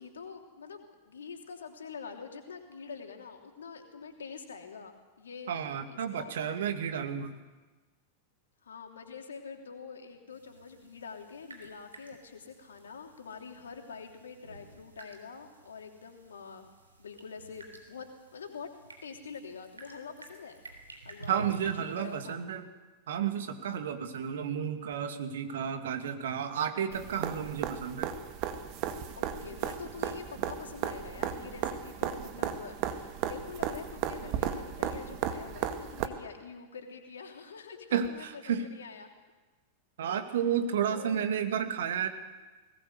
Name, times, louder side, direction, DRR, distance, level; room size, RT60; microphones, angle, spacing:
voice 1, 0.0-5.6 5.9-6.6 8.6-16.7 17.0-18.7 19.0-20.6 21.0-22.6 29.2-39.1 40.1-40.2 40.5-41.3, left 5 dB, 70° left, 4 dB, 3.0 m, -46 dB
voice 2, 5.5-7.3 21.3-22.6 23.1-28.1 37.9-38.7 40.0-42.1, right 8 dB, 60° right, 7 dB, 2.3 m, -32 dB
sound 1, 10.3-22.3, right 3 dB, 80° right, 3.6 m, -52 dB
sound 2, 26.9-36.1 38.0-38.1, right 9 dB, 40° right, 2.0 m, -35 dB
21.0 x 18.5 x 8.0 m, 1.2 s
figure-of-eight pair, 90°, 0 cm